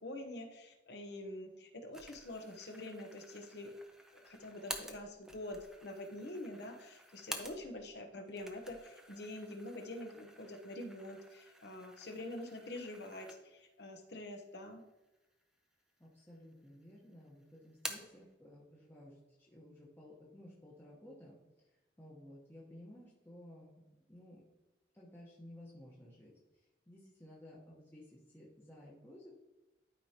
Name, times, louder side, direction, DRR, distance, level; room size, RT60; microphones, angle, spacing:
voice 1, 0.0-3.7 4.1-14.8, left 1 dB, 60° left, 4 dB, 1.0 m, -46 dB
sound 1, 1.9-7.9 8.3-13.7 14.1-14.2 15.1-15.7 16.1-16.8 17.1-18.2, right 1 dB, 5° right, 0.6 m, -50 dB
voice 2, 16.0-23.8 24.1-24.4 24.9-29.3, left 1 dB, 10° left, -6 dB, 1.1 m, -55 dB
12.0 x 4.9 x 2.9 m, 1.0 s
head